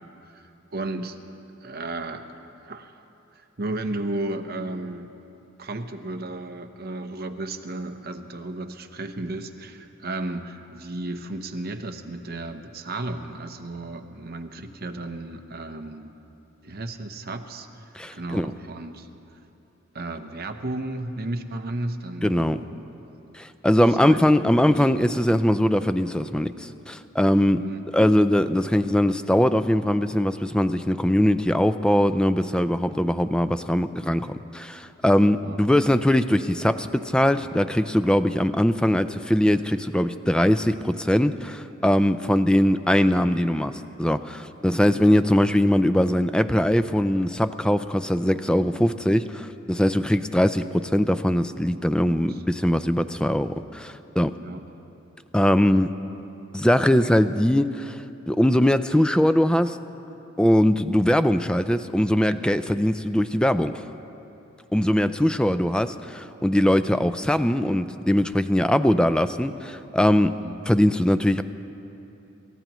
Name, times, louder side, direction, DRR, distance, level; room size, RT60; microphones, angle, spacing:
voice 1, 0.3-1.2 1.6-2.2 2.6-3.0 3.4-5.1 5.6-16.1 16.6-17.8 18.1-19.1 19.9-22.8 24.0-24.7 27.6-27.8 35.4-35.6 37.3-37.5 42.9-43.2 52.2-52.4 54.4-54.6 70.4-70.6, right 2 dB, 50° right, 6 dB, 0.8 m, -34 dB
voice 2, 18.0-18.5 22.2-22.6 23.3-27.6 27.9-54.3 55.3-55.9 56.5-58.0 58.3-59.8 60.4-63.8 64.7-70.4 70.7-71.4, left 1 dB, 5° left, 11 dB, 0.3 m, -21 dB
27.5 x 14.5 x 3.1 m, 2.9 s
head